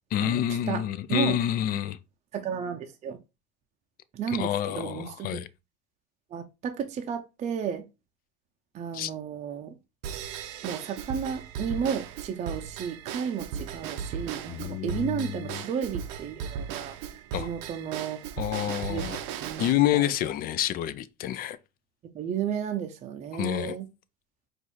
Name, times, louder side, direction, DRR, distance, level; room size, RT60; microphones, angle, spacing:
voice 1, 0.1-2.0 4.3-5.5 8.9-9.1 14.5-15.6 17.3-17.5 18.4-19.2 19.6-21.6 23.3-23.8, left 12 dB, 45° left, 0.4 m, -28 dB
voice 2, 2.3-3.2 4.1-5.4 6.3-7.9 8.7-9.8 10.6-18.2 18.9-19.0 19.4-20.1 22.1-23.9, right 7 dB, 35° right, 0.5 m, -33 dB
Drum kit / Drum / Bell, 10.0-19.7, right 8 dB, 80° right, 0.7 m, -37 dB
4.6 x 2.5 x 4.1 m
supercardioid pair, 120°, 21 cm